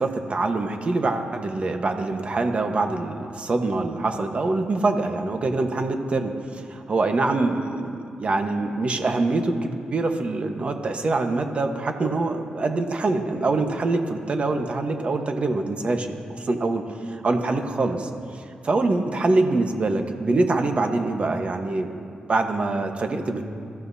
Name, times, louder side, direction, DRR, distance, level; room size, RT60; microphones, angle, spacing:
voice 1, 0.0-22.0 22.3-23.4, right 3 dB, 40° right, 5 dB, 1.2 m, -24 dB
23.0 x 14.5 x 2.8 m, 2.3 s
cardioid pair, 90°, 3 cm